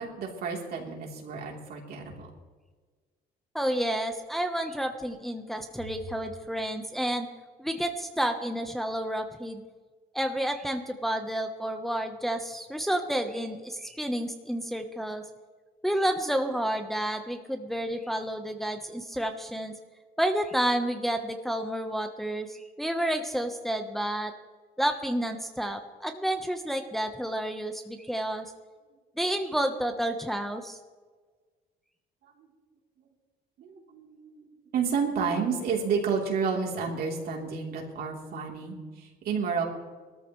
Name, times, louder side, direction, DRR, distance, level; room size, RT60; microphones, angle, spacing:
voice 1, 0.0-2.3 32.2-32.5 33.6-39.6, right 5 dB, 65° right, -1 dB, 3.5 m, -31 dB
voice 2, 3.5-7.3 7.6-9.6 10.1-15.2 15.8-19.7 20.2-24.3 24.8-28.5 29.2-30.8, right 1 dB, ahead, 5 dB, 1.0 m, -30 dB
20.5 x 13.5 x 3.2 m, 1.4 s
cardioid pair, 110°, 17 cm